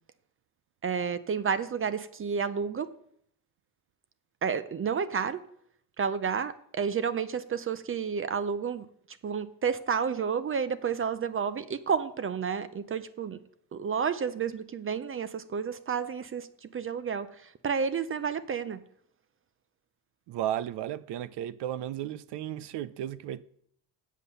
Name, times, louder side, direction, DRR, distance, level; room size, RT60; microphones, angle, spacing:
voice 1, 0.8-2.9 4.4-5.4 6.0-8.9 9.2-13.4 13.7-18.8, right 6 dB, 35° right, 0.5 m, -31 dB
voice 2, 20.3-23.4, right 12 dB, 85° right, 0.7 m, -34 dB
8.3 x 7.4 x 6.8 m
cardioid pair, 150°, 40 cm